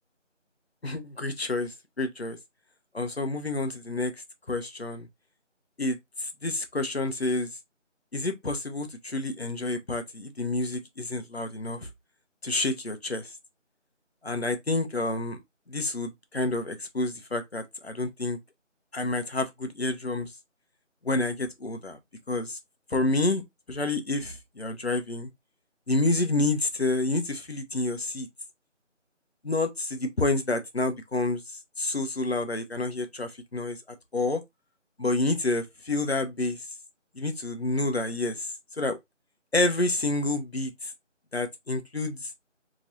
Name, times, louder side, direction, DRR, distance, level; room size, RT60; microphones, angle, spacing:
voice 1, 0.8-2.4 2.9-4.1 4.5-5.1 5.8-7.5 8.1-11.9 12.4-13.3 14.2-15.4 15.7-18.4 18.9-20.3 21.0-22.0 22.3-22.6 22.9-23.4 23.7-25.3 25.9-28.3 29.4-33.8 34.1-34.4 35.0-36.6 37.1-39.0 39.5-40.9 41.3-42.3, left 2 dB, 55° left, 0.7 m, -29 dB
3.0 x 2.5 x 2.9 m
figure-of-eight pair, 175°, 38 cm